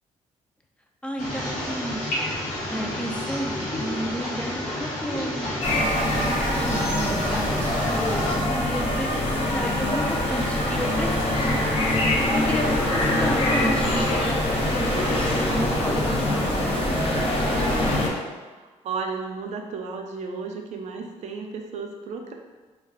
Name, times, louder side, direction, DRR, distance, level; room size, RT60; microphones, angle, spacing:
voice 1, 1.0-2.0 2.7-17.2, equal, 10° left, 1 dB, 0.4 m, -32 dB
sound 1, 1.2-8.3, left 1 dB, 70° left, 1.0 m, -31 dB
sound 2, 5.6-18.1, left 1 dB, 45° left, 0.7 m, -24 dB
voice 2, 18.6-22.3, right 4 dB, 60° right, 3 dB, 0.4 m, -33 dB
2.3 x 2.3 x 3.4 m, 1.3 s
cardioid pair, 75°, 13 cm